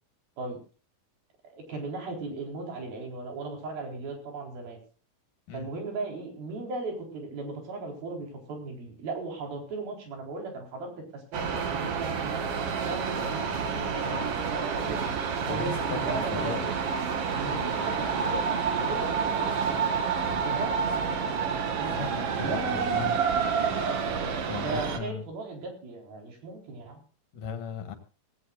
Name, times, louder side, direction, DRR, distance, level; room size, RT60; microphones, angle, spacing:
voice 1, 1.4-4.8 5.5-12.4 12.8-15.1 15.5-16.8 17.3-18.4 18.8-19.8 20.4-21.1 21.8-22.0 22.4-23.1 24.6-27.0, right 3 dB, 85° right, 1 dB, 6.1 m, -37 dB
sound 1, 11.3-25.0, right 6 dB, 55° right, 1.9 m, -29 dB
voice 2, 15.5-16.7 17.6-17.7 20.3-20.5 21.9-23.1 24.5-25.2 27.3-28.0, left 6 dB, 65° left, 7 dB, 3.1 m, -37 dB
19.0 x 17.0 x 2.5 m, 0.37 s
omnidirectional pair, 4.1 m